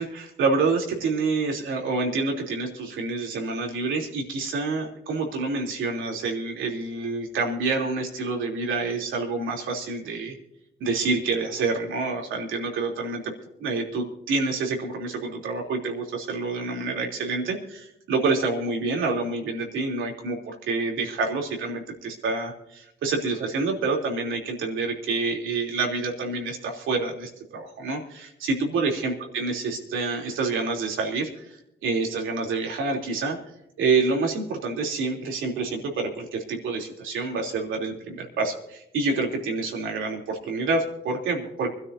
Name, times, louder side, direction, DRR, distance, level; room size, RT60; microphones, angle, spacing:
voice 1, 0.0-10.3 10.8-13.3 13.6-33.4 33.8-41.7, right 3 dB, 80° right, 1 dB, 3.3 m, -27 dB
25.0 x 13.0 x 2.7 m, 0.82 s
cardioid pair, 90°, 20 cm